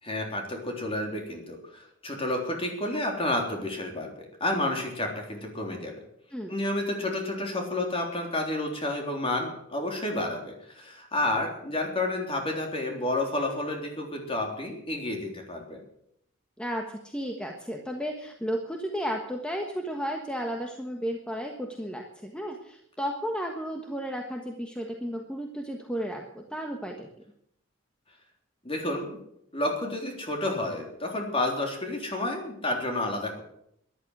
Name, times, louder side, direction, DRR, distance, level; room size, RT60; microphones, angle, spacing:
voice 1, 0.0-4.1 4.4-5.9 6.5-15.8 28.6-29.2 29.5-33.4, left 1 dB, 30° left, 2 dB, 3.6 m, -30 dB
voice 2, 16.6-27.1, equal, 5° left, 2 dB, 1.4 m, -33 dB
13.5 x 11.5 x 8.0 m, 0.73 s
head